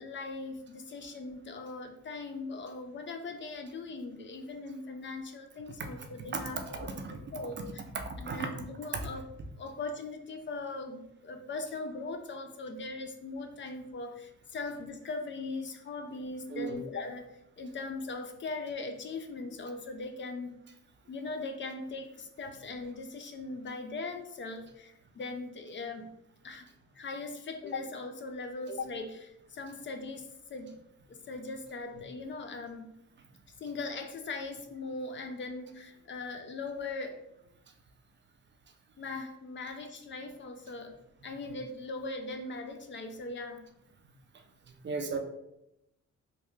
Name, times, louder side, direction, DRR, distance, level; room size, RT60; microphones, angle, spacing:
voice 1, 0.0-7.8 8.2-9.2 9.6-20.6 21.1-26.1 26.4-26.7 26.9-30.7 31.1-32.9 33.6-37.2 39.0-43.6, left 3 dB, 40° left, 6 dB, 0.4 m, -40 dB
voice 2, 6.3-7.1 7.9-8.4 16.5-16.8 44.8-45.2, right 4 dB, 40° right, 5 dB, 0.5 m, -35 dB
3.4 x 2.3 x 3.1 m, 0.83 s
cardioid pair, 90°, 30 cm